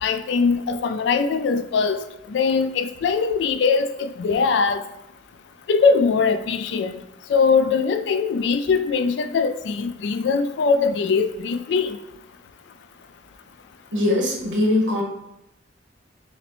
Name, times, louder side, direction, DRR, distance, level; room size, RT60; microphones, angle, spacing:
voice 1, 0.0-2.0 2.3-4.8 5.7-7.0 7.3-12.0, left 5 dB, 70° left, 10 dB, 0.3 m, -21 dB
voice 2, 13.9-15.0, left 1 dB, 85° right, 0 dB, 1.0 m, -21 dB
5.7 x 2.1 x 3.0 m, 0.85 s
head